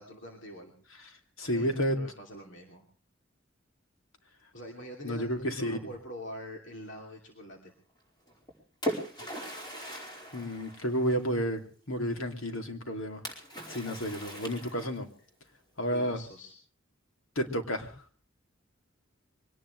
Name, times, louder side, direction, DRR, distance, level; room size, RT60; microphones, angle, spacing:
voice 1, 0.0-2.8 4.5-7.7 14.3-14.4 15.9-16.5, equal, 65° left, 2 dB, 2.8 m, -45 dB
voice 2, 1.4-2.0 5.0-5.8 9.8-13.2 13.7-15.1 15.8-16.2 17.4-18.0, equal, 90° left, 5 dB, 2.7 m, -31 dB
Splash splatter, 8.3-11.5 13.3-15.2, equal, 20° left, 4.8 m, -39 dB
24.0 x 18.5 x 3.2 m, 0.40 s
head